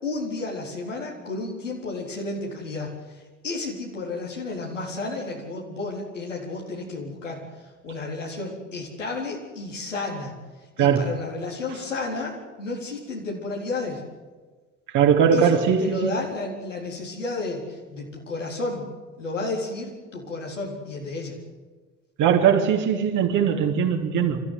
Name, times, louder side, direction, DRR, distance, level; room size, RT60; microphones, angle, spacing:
voice 1, 0.0-3.0 3.4-10.3 10.8-14.0 15.3-18.9 19.2-21.3, left 3 dB, 90° left, 4.0 m, -32 dB
voice 2, 10.8-11.1 14.9-16.1 22.2-24.4, right 7 dB, 55° right, 3.3 m, -20 dB
26.0 x 14.0 x 9.4 m
figure-of-eight pair, 55°, 36 cm